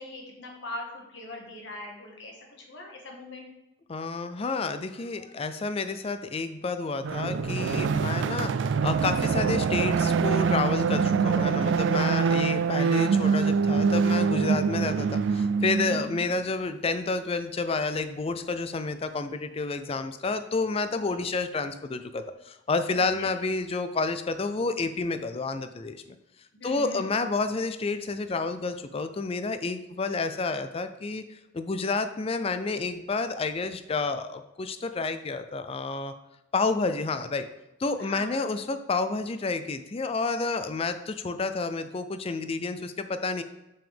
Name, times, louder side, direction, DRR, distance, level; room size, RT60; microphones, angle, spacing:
voice 1, 0.0-3.4 12.0-12.4 15.9-16.3 21.1-21.2 22.9-23.3 26.5-27.1 38.0-38.5, left 1 dB, 60° left, 0 dB, 1.6 m, -42 dB
voice 2, 3.9-26.0 26.6-36.1 36.5-37.5 37.8-43.4, left 3 dB, 30° left, 10 dB, 0.4 m, -30 dB
sound 1, 7.0-16.2, right 5 dB, 60° right, 0.3 m, -25 dB
7.0 x 6.1 x 3.5 m, 0.93 s
head